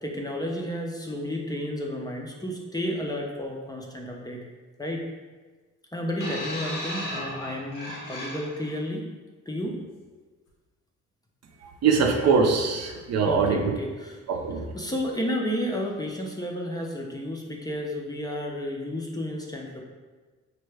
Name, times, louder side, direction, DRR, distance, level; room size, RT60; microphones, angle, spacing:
voice 1, 0.0-4.4 4.8-5.0 5.9-9.1 9.5-9.8 12.9-14.2 14.7-19.8, equal, 15° left, -1 dB, 0.5 m, -32 dB
sound 1, 6.2-8.7 9.7-9.8, left 1 dB, 90° left, 1.0 m, -35 dB
voice 2, 11.8-13.6 14.3-14.7, right 5 dB, 55° right, 2 dB, 0.6 m, -22 dB
4.5 x 2.2 x 3.2 m, 1.3 s
cardioid pair, 90°, 30 cm